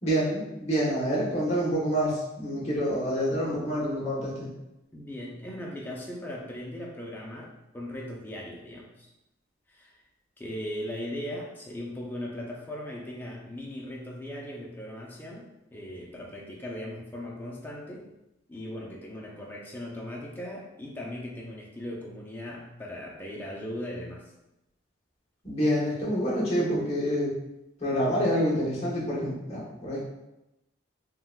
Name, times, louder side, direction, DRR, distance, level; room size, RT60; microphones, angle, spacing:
voice 1, 0.0-4.5 25.4-27.3 27.8-30.0, equal, 30° left, -6 dB, 0.9 m, -27 dB
voice 2, 4.9-9.1 9.7-10.0 10.4-15.5 15.7-18.1 18.5-24.2, left 1 dB, 10° left, -2 dB, 0.4 m, -38 dB
3.6 x 2.2 x 2.3 m, 0.93 s
head